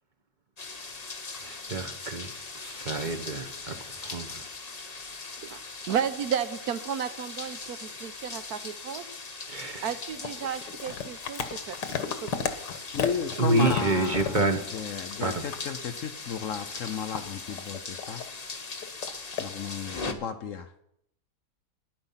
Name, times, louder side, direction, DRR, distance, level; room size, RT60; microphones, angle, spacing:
sound 1, 0.6-20.1, left 4 dB, 30° left, 0.9 m, -40 dB
voice 1, 1.4-2.3 2.6-3.8 4.0-4.5 5.1-5.2 9.5-9.9 13.4-14.6 15.2-15.5, right 2 dB, 35° right, 5 dB, 1.0 m, -28 dB
voice 2, 5.9-9.0 9.8-12.5, right 8 dB, 65° right, 11 dB, 1.2 m, -33 dB
sound 2, 10.2-15.3 15.5-15.7 16.3-18.3 18.8-19.5, left 7 dB, 85° left, 1.7 m, -34 dB
voice 3, 12.9-14.4 14.7-18.2 19.4-20.7, left 7 dB, 60° left, 9 dB, 0.9 m, -34 dB
13.5 x 10.5 x 5.7 m, 0.78 s
omnidirectional pair, 1.8 m